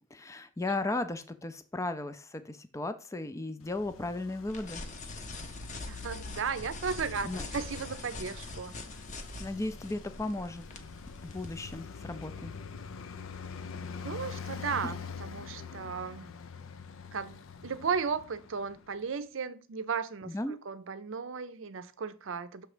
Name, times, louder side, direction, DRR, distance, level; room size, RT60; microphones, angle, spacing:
voice 1, 0.0-4.8 7.2-7.4 9.4-10.7 11.2-12.5 20.3-20.6, left 2 dB, 15° left, 0.5 m, -35 dB
Traffic noise roadway noise, 3.6-19.1, left 6 dB, 75° left, 0.5 m, -45 dB
sound 1, 4.5-11.7, left 2 dB, 35° left, 0.8 m, -43 dB
voice 2, 5.9-8.7 14.0-16.4 17.1-22.7, right 5 dB, 65° right, 0.6 m, -35 dB
6.4 x 3.4 x 4.9 m
head